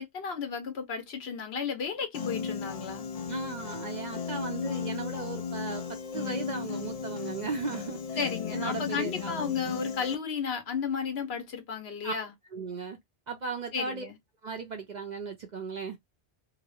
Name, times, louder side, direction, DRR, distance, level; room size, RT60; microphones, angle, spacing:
voice 1, 0.0-3.1 8.2-12.3 13.7-14.1, left 6 dB, 80° left, 1.1 m, -33 dB
Piano, 2.1-10.2, left 6 dB, 55° left, 0.4 m, -35 dB
voice 2, 3.3-9.3 12.0-12.1 12.5-13.0 13.3-14.0 14.4-16.0, right 4 dB, 50° right, 0.7 m, -36 dB
2.9 x 2.1 x 2.4 m
omnidirectional pair, 1.0 m